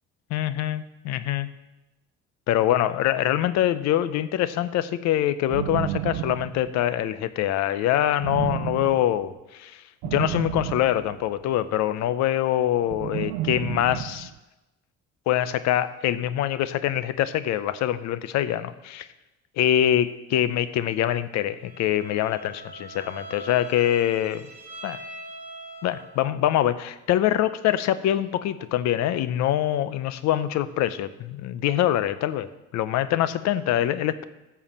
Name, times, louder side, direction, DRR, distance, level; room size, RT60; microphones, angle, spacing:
voice 1, 0.3-1.5 2.5-14.3 15.3-19.1 19.6-24.4 24.8-25.0 25.8-32.5 32.7-34.2, left 12 dB, 65° left, 14 dB, 0.7 m, -24 dB
sound 1, 5.5-7.0 8.2-9.2 10.0-11.5 12.8-14.4, right 14 dB, 85° right, 0.5 m, -31 dB
Bowed string instrument, 21.6-26.3, right 2 dB, 20° right, 3.6 m, -42 dB
14.0 x 4.8 x 7.2 m, 1.0 s
cardioid pair, 120°, 29 cm